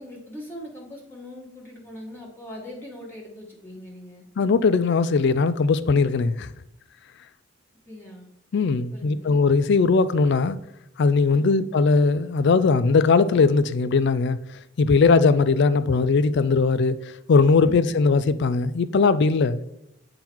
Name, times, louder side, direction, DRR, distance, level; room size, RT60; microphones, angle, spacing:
voice 1, 0.0-4.2 7.8-8.3 8.9-9.4 11.3-11.6 17.6-17.9, left 1 dB, 10° left, 1.3 m, -41 dB
voice 2, 4.4-6.5 8.5-10.6 11.0-14.4 14.8-17.0 17.3-19.6, left 4 dB, 55° left, 0.4 m, -19 dB
8.6 x 3.8 x 4.5 m
head